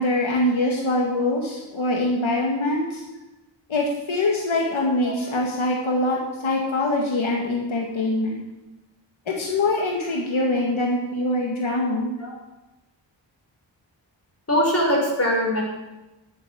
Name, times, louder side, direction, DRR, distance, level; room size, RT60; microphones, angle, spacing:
voice 1, 0.0-3.0 3.7-8.4 9.3-12.1, left 2 dB, 80° left, -1 dB, 2.1 m, -23 dB
voice 2, 14.5-15.6, equal, 30° left, -2 dB, 5.8 m, -22 dB
10.5 x 8.8 x 9.0 m, 1.0 s
wide cardioid pair, 70°, 47 cm